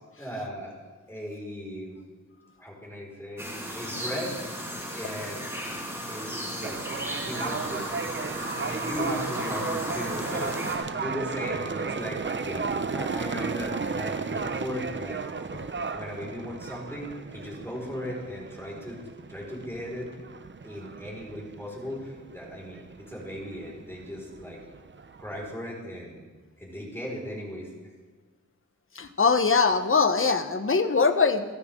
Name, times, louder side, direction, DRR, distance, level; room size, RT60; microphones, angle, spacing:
voice 1, 0.2-0.8 1.1-2.0 2.6-5.5 6.1-6.8 7.2-7.9 8.6-12.7 12.9-15.2 15.9-20.1 20.6-24.6 25.2-26.3 26.6-27.7, equal, 10° left, -3 dB, 5.2 m, -37 dB
sound 1, 3.4-10.8, equal, 10° right, 5.9 m, -35 dB
sound 2, 6.6-25.5, right 4 dB, 35° right, 0.7 m, -34 dB
voice 2, 28.9-31.6, left 4 dB, 45° left, 9 dB, 1.1 m, -22 dB
30.0 x 10.0 x 3.8 m, 1.4 s
wide cardioid pair, 115°, 31 cm